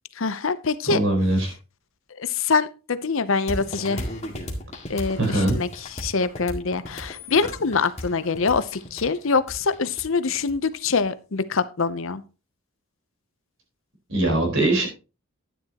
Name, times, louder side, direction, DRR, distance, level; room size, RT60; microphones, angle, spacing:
voice 1, 0.2-1.0 2.2-4.0 4.9-5.7 6.0-12.2, left 4 dB, 65° left, 14 dB, 0.7 m, -24 dB
voice 2, 0.9-1.5 5.2-5.6 14.1-14.9, right 1 dB, 65° right, 1 dB, 4.3 m, -21 dB
sound 1, 3.5-11.0, left 1 dB, 30° left, 2.0 m, -35 dB
12.0 x 10.0 x 2.9 m, 0.32 s
head